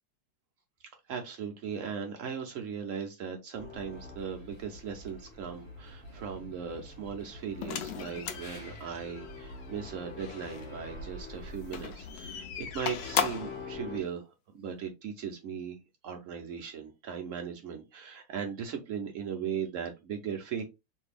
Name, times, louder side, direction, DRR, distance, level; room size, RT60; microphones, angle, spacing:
voice 1, 1.1-15.8 16.0-20.6, right 7 dB, 85° right, 3 dB, 0.6 m, -38 dB
sound 1, 3.5-14.0, left 3 dB, 40° left, 1.3 m, -46 dB
sound 2, 7.6-10.7 11.6-13.6, left 9 dB, 75° left, 1.2 m, -36 dB
3.2 x 2.6 x 3.3 m, 0.24 s
omnidirectional pair, 2.0 m